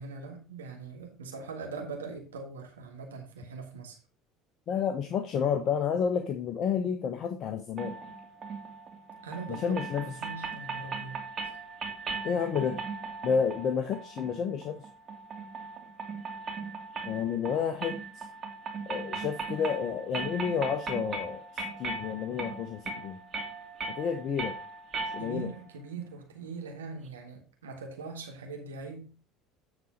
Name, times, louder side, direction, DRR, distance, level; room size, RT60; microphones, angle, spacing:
voice 1, 0.0-4.0 9.2-11.2 25.2-29.2, right 4 dB, 85° right, 1.5 m, -41 dB
voice 2, 4.7-8.0 9.5-10.1 12.2-12.8 13.2-14.8 17.0-18.3 18.9-23.2 24.0-24.6 25.1-25.5, left 7 dB, 50° left, 1.0 m, -30 dB
sound 1, 7.8-25.6, right 4 dB, 40° right, 2.4 m, -39 dB
9.6 x 4.3 x 5.0 m
hypercardioid pair, 65°, 0 cm